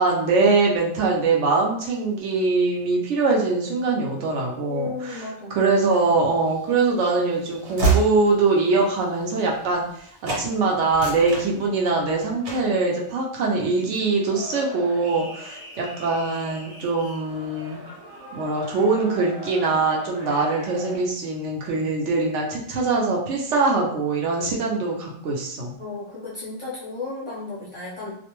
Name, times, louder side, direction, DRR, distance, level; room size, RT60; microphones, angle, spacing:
voice 1, 0.0-5.2 5.5-9.9 10.2-17.8 18.3-25.7, right 3 dB, 70° right, -1 dB, 0.9 m, -22 dB
voice 2, 4.7-5.6 25.8-28.2, left 3 dB, 40° left, -8 dB, 0.4 m, -34 dB
Train / Slam, 6.4-10.0 10.2-10.5 10.8-12.0 12.4-12.8, right 4 dB, 90° right, 1.2 m, -27 dB
sound 1, 14.3-21.0, equal, 25° right, 0.5 m, -40 dB
2.5 x 2.1 x 2.9 m, 0.66 s
omnidirectional pair, 1.4 m